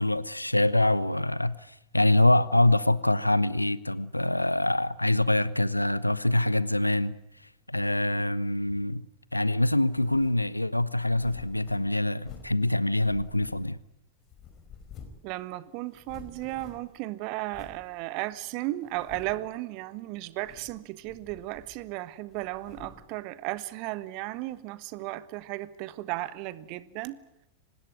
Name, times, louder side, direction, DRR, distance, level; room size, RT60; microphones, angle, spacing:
voice 1, 0.0-7.2 7.7-9.1 9.3-13.8, left 1 dB, 85° left, 0.9 m, -25 dB
sound 1, 9.9-10.4 11.0-12.6 13.0-13.9 14.3-15.3 15.5-15.6 15.9-17.0 17.5-17.8 18.3-18.4 18.9-19.5 20.3-20.8 21.0-21.9 22.3-23.1, left 6 dB, 35° left, 4.8 m, -49 dB
voice 2, 15.2-27.2, right 18 dB, 45° right, 1.4 m, -35 dB
25.0 x 19.5 x 9.6 m
figure-of-eight pair, 90°, 0 cm